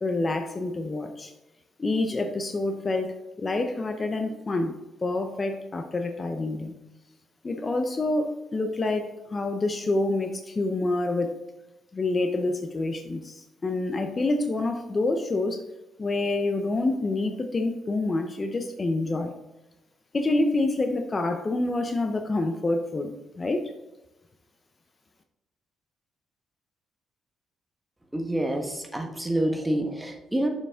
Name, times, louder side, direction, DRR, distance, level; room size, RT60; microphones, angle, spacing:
voice 1, 0.0-1.3 1.8-6.7 7.4-11.3 11.9-15.6 16.0-19.3 20.1-23.7, left 2 dB, 30° left, 6 dB, 0.7 m, -27 dB
voice 2, 28.1-30.5, right 1 dB, 10° right, 4 dB, 1.3 m, -27 dB
6.9 x 5.9 x 3.6 m, 1.0 s
cardioid pair, 90°, 0 cm